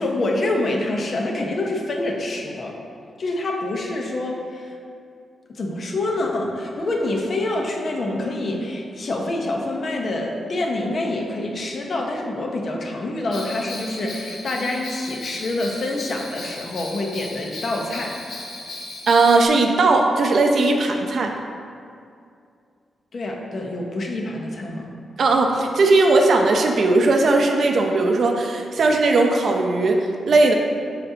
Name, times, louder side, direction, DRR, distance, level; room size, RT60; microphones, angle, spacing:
voice 1, 0.0-2.8 3.2-4.8 5.5-18.2 23.1-24.9, left 2 dB, 50° left, 0 dB, 0.9 m, -26 dB
Bell, 13.3-19.5, left 2 dB, 85° left, 1.5 m, -36 dB
voice 2, 19.1-21.3 25.2-30.5, right 3 dB, 60° right, 2 dB, 0.7 m, -18 dB
12.0 x 4.3 x 2.9 m, 2.4 s
wide cardioid pair, 120°, 0 cm